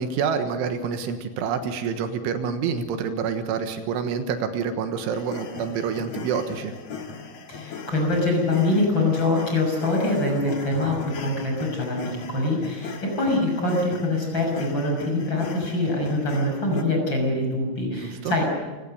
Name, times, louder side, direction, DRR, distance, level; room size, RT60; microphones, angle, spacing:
voice 1, 0.0-6.7 17.9-18.4, right 6 dB, 85° right, 7 dB, 3.8 m, -27 dB
sound 1, 5.1-16.8, left 6 dB, 55° left, 1.8 m, -38 dB
voice 2, 7.5-18.4, left 2 dB, 25° left, 1 dB, 6.6 m, -24 dB
29.0 x 17.5 x 6.7 m, 1.3 s
omnidirectional pair, 5.5 m